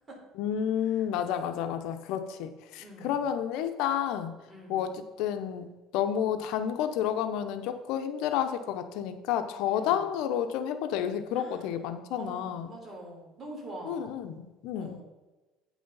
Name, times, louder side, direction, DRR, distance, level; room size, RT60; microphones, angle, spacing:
voice 1, 0.4-4.3 4.7-12.7 13.9-15.0, left 9 dB, 75° left, 8 dB, 0.8 m, -30 dB
voice 2, 2.8-3.3 4.5-4.9 9.7-10.1 11.3-11.8 12.2-14.2 14.8-15.0, right 1 dB, 25° right, -1 dB, 3.6 m, -45 dB
8.9 x 6.2 x 5.5 m, 1.2 s
cardioid pair, 130°, 0 cm